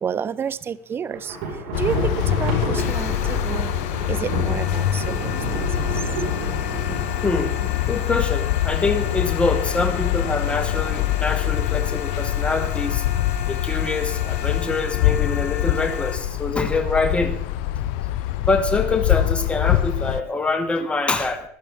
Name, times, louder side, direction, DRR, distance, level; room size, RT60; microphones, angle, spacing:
voice 1, 0.0-1.4 1.8-2.1 2.4-3.7 4.1-5.4, right 7 dB, 30° right, 18 dB, 0.6 m, -29 dB
Thunder, 1.1-8.4, right 2 dB, 70° right, 4.9 m, -30 dB
sound 1, 1.7-20.2, left 13 dB, 75° left, 0.5 m, -24 dB
sound 2, 2.8-16.2, left 8 dB, 90° left, 1.6 m, -36 dB
voice 2, 7.2-7.5 7.9-13.0 13.5-17.4 18.5-21.4, left 3 dB, 15° left, 6 dB, 1.7 m, -25 dB
16.0 x 11.5 x 3.6 m, 0.66 s
supercardioid pair, 100°, 8 cm